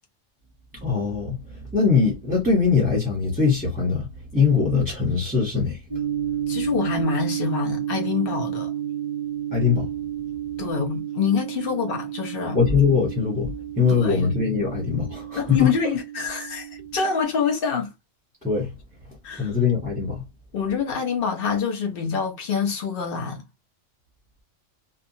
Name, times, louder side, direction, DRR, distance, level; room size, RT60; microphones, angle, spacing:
voice 1, 0.8-4.1 4.3-5.8 9.5-9.9 12.5-15.7 18.4-18.7 19.4-20.2, left 5 dB, 10° right, 0.8 m, -22 dB
sound 1, 5.9-17.2, right 11 dB, 40° right, 0.5 m, -31 dB
voice 2, 6.5-8.7 10.6-12.6 13.9-14.3 15.4-17.9 19.2-19.5 20.5-23.4, left 6 dB, 55° left, 0.9 m, -26 dB
2.7 x 2.3 x 2.7 m
omnidirectional pair, 1.3 m